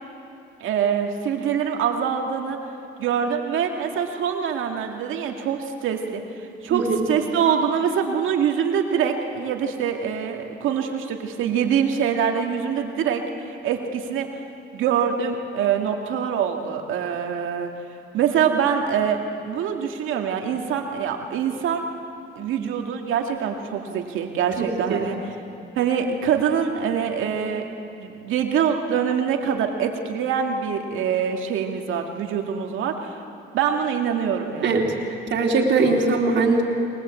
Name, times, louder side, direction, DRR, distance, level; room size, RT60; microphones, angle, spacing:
voice 1, 0.6-2.6 3.0-6.2 6.6-14.3 14.7-17.7 18.1-21.9 22.4-25.2 25.8-27.7 28.0-33.1 33.5-34.7, right 7 dB, 85° right, 3 dB, 2.1 m, -24 dB
voice 2, 6.7-7.0 24.6-25.1 34.6-34.8 35.3-36.6, right 3 dB, 65° right, -1 dB, 3.4 m, -21 dB
22.0 x 19.5 x 8.4 m, 2.6 s
cardioid pair, 90°, 20 cm